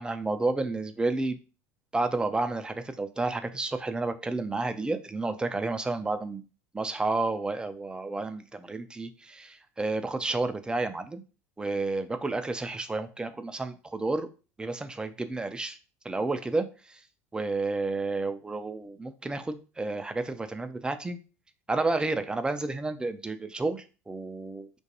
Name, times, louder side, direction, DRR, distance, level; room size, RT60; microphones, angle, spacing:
voice 1, 0.0-1.4 1.9-6.4 6.7-11.2 11.6-14.3 14.6-15.8 16.0-17.0 17.3-21.2 21.7-24.8, right 3 dB, 10° right, 9 dB, 0.3 m, -31 dB
2.4 x 2.2 x 2.8 m, 0.33 s
hypercardioid pair, 75°, 8 cm